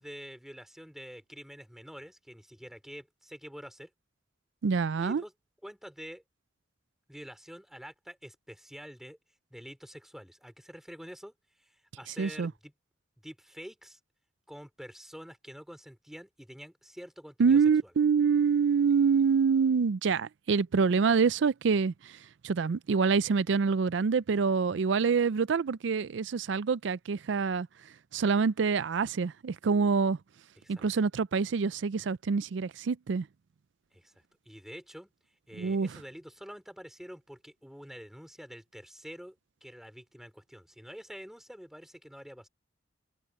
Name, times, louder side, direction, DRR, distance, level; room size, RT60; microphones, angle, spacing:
voice 1, 0.0-3.9 5.0-5.3 5.6-6.2 7.1-9.2 9.5-12.7 13.2-14.0 14.5-17.9 30.6-30.8 33.9-34.1 34.4-35.1 35.5-39.4 39.6-42.5, equal, ahead, 3.0 m, -47 dB
voice 2, 4.6-5.2 12.2-12.5 17.4-22.2 22.4-27.7 28.1-30.2 30.7-33.3 35.6-35.9, right 5 dB, 70° right, 0.4 m, -26 dB
head